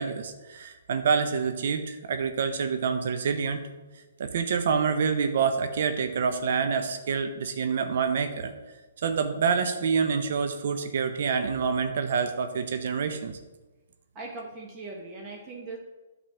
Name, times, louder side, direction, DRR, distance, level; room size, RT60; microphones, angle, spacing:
voice 1, 0.0-3.6 4.2-8.5 9.0-13.4, right 6 dB, 60° right, 7 dB, 0.8 m, -27 dB
voice 2, 14.1-15.8, right 3 dB, 25° right, -2 dB, 1.5 m, -39 dB
9.0 x 4.2 x 7.3 m, 1.2 s
hypercardioid pair, 135°, 0 cm